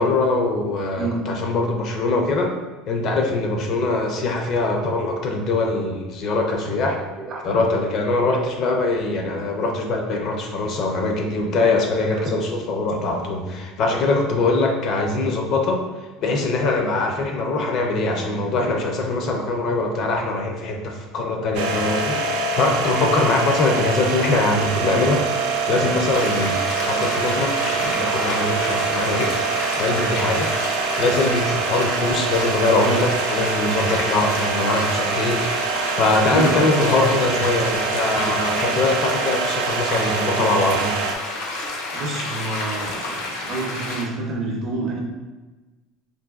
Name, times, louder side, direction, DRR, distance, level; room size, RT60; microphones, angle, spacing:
voice 1, 0.0-2.5 2.9-7.0 7.4-15.8 16.2-25.3 25.7-26.6 26.9-29.3 29.8-30.5 31.0-35.5 35.9-40.9, left 2 dB, 40° left, 2 dB, 0.4 m, -22 dB
voice 2, 0.9-1.3 7.2-7.4 12.0-12.3 23.2-23.3 27.6-27.8 36.3-36.6 41.9-45.0, right 2 dB, 35° right, -1 dB, 0.6 m, -29 dB
sound 1, 21.5-41.1, right 4 dB, 75° right, 0.3 m, -25 dB
sound 2, 26.1-44.0, left 2 dB, 85° left, 0.6 m, -30 dB
3.9 x 2.6 x 2.3 m, 1.2 s
cardioid pair, 165°, 0 cm